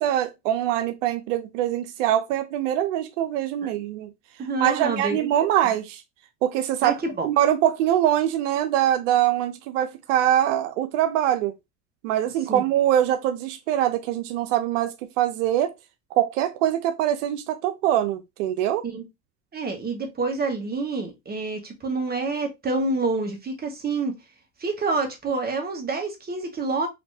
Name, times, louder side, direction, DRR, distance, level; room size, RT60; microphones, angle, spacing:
voice 1, 0.0-4.1 4.6-6.0 6.4-7.0 7.2-11.5 12.0-15.7 16.1-18.8, right 11 dB, 85° right, 0.6 m, -23 dB
voice 2, 4.4-5.3 6.8-7.3 12.5-12.6 18.8-19.0 19.5-24.1 24.6-26.9, right 3 dB, 25° right, 1.4 m, -27 dB
4.4 x 3.0 x 2.6 m
supercardioid pair, 100°, 37 cm